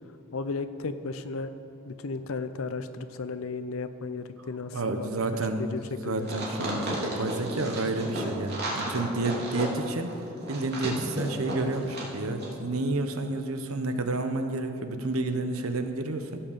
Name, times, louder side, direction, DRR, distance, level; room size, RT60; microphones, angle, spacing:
voice 1, 0.3-1.5 1.9-5.1 5.6-6.3, left 4 dB, 75° left, 11 dB, 0.6 m, -34 dB
voice 2, 4.7-5.7 6.0-10.1 10.5-16.4, right 2 dB, 90° right, 7 dB, 0.9 m, -30 dB
sound 1, 6.2-12.1 12.4-12.5, right 1 dB, 55° right, 2.9 m, -33 dB
16.0 x 5.8 x 6.8 m, 2.6 s
head